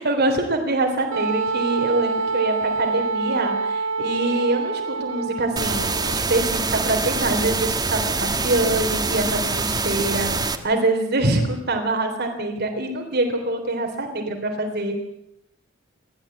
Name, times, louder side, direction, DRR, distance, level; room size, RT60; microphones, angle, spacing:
voice 1, 0.0-15.0, right 2 dB, 55° right, 4 dB, 3.5 m, -24 dB
Wind instrument woodwind instrument, 1.1-6.3, right 4 dB, 85° right, 1.4 m, -26 dB
sound 1, 5.6-10.6, right 3 dB, 20° right, 1.7 m, -25 dB
29.5 x 12.5 x 8.8 m, 0.79 s
head